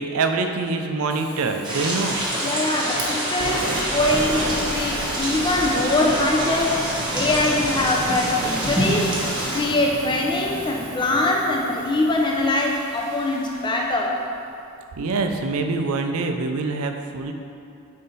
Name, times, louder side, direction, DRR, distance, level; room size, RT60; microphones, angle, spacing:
voice 1, 0.0-2.2 15.0-17.3, right 3 dB, 70° right, 5 dB, 0.5 m, -25 dB
Fire, 1.1-14.2, right 1 dB, 85° right, 0.9 m, -35 dB
sound 1, 1.6-9.6, right 1 dB, 20° right, 0.9 m, -26 dB
voice 2, 2.4-6.8 7.1-9.1 9.5-14.2, left 2 dB, 20° left, -1 dB, 0.5 m, -23 dB
sound 2, 3.6-9.7, equal, 65° left, 0.6 m, -42 dB
5.4 x 4.3 x 4.1 m, 2.6 s
head